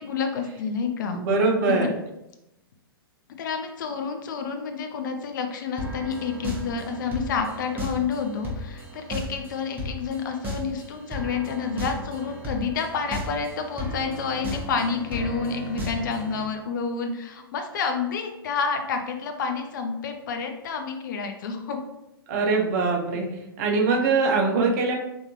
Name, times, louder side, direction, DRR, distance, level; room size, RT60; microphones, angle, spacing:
voice 1, 0.0-1.2 1.7-1.9 3.4-21.8, left 5 dB, 55° left, 5 dB, 0.7 m, -29 dB
voice 2, 1.1-1.9 22.3-25.0, right 4 dB, 45° right, 1 dB, 1.0 m, -22 dB
sound 1, 5.8-16.4, equal, 15° right, 1.2 m, -35 dB
4.8 x 3.6 x 3.1 m, 0.87 s
figure-of-eight pair, 110°, 13 cm